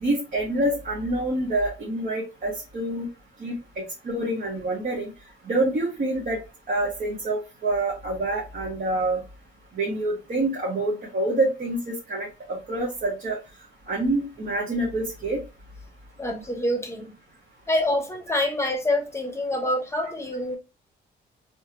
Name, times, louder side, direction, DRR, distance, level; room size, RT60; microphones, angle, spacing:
voice 1, 0.0-3.1 3.4-5.1 5.5-6.4 6.7-9.2 9.7-11.8 12.1-13.4 13.9-15.4, right 2 dB, 45° right, 1.3 m, -26 dB
voice 2, 16.2-17.1 17.7-20.6, left 1 dB, 15° left, 0.9 m, -26 dB
3.4 x 2.3 x 2.8 m
cardioid pair, 90°, 20 cm